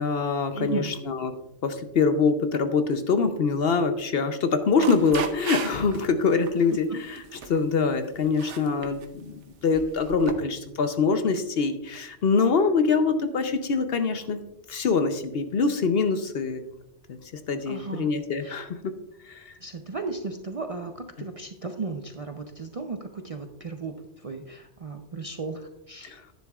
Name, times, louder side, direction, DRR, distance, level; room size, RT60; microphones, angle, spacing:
voice 1, 0.0-1.3 1.6-14.4 14.7-16.6 17.1-17.2 17.5-18.9 19.3-19.6 26.0-26.2, left 4 dB, 60° left, 8 dB, 0.8 m, -24 dB
voice 2, 0.5-0.9 17.7-18.1 18.4-18.6 19.6-24.0 24.2-26.1, right 4 dB, 45° right, 5 dB, 0.5 m, -35 dB
sound 1, 4.7-6.0 6.5-6.7 7.2-7.6 8.2-9.1 9.8-10.3, right 6 dB, 75° right, 1.1 m, -35 dB
10.5 x 10.5 x 2.3 m, 0.90 s
omnidirectional pair, 1.2 m